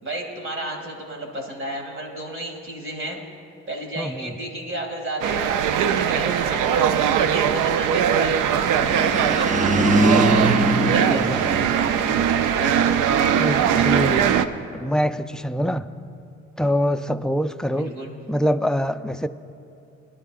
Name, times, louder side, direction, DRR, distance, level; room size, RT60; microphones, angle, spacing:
voice 1, 0.0-3.2 3.7-8.4 8.8-10.2 10.9-11.6 12.6-12.8 13.6-13.9 17.7-18.1, right 1 dB, 40° right, 1 dB, 2.6 m, -33 dB
voice 2, 4.0-4.3 11.1-11.7 13.4-14.4 14.7-15.9 16.6-17.9 18.3-19.3, equal, ahead, 9 dB, 0.3 m, -25 dB
sound 1, 5.2-14.5, right 8 dB, 90° right, 0.5 m, -21 dB
sound 2, 8.6-12.2, right 1 dB, 25° right, 0.7 m, -22 dB
20.0 x 11.5 x 2.5 m, 2.6 s
cardioid pair, 90°, 30 cm